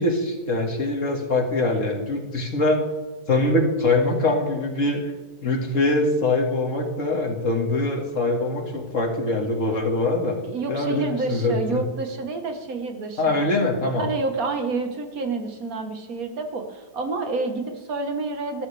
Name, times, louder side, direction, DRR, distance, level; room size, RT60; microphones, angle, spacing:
voice 1, 0.0-2.8 3.3-5.0 5.4-10.3 10.7-11.8 13.2-14.1, left 2 dB, 50° left, 0 dB, 2.3 m, -23 dB
voice 2, 10.4-13.5 14.0-18.7, right 3 dB, 60° right, 5 dB, 1.8 m, -29 dB
14.0 x 13.5 x 3.4 m, 1.2 s
omnidirectional pair, 1.7 m